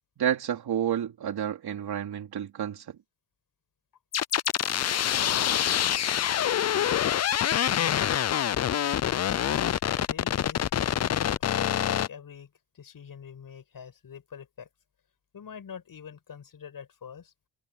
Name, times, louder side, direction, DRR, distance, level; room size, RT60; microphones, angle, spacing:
voice 1, 0.2-2.9, right 9 dB, 70° right, 3.7 m, -30 dB
sound 1, 4.1-12.1, left 10 dB, 40° left, 0.5 m, -26 dB
voice 2, 7.7-8.2 9.8-10.7 11.0-14.7 15.3-17.3, left 7 dB, 60° left, 7.6 m, -44 dB
cardioid pair, 65°, 40 cm